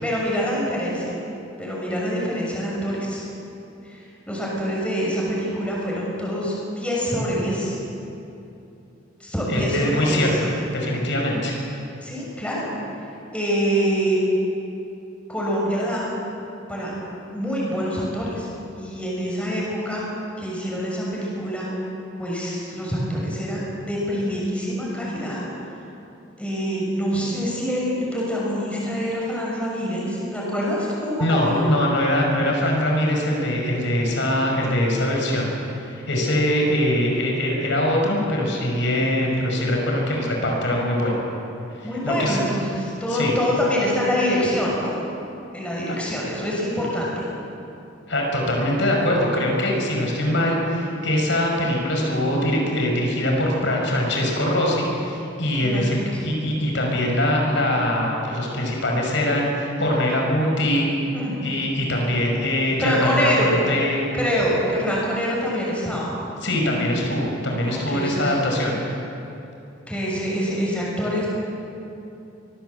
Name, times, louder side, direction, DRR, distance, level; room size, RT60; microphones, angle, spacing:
voice 1, 0.0-1.2 1.6-3.2 3.9-4.0 4.3-7.7 9.2-10.4 12.0-12.7 13.3-14.2 15.3-16.1 16.7-16.9 17.3-18.5 18.8-20.0 20.4-21.7 22.2-25.4 26.4-31.6 41.8-45.0 45.5-47.2 55.6-56.2 61.1-61.3 62.8-63.6 64.1-66.1 67.6-68.3 69.9-71.3, equal, 5° left, -5 dB, 6.7 m, -25 dB
voice 2, 9.5-11.6 31.2-35.5 35.9-41.2 42.0-42.4 43.1-43.3 45.9-46.0 48.1-60.9 61.4-64.0 66.4-68.9, left 1 dB, 70° left, 0 dB, 5.2 m, -22 dB
24.0 x 18.5 x 8.0 m, 2.8 s
head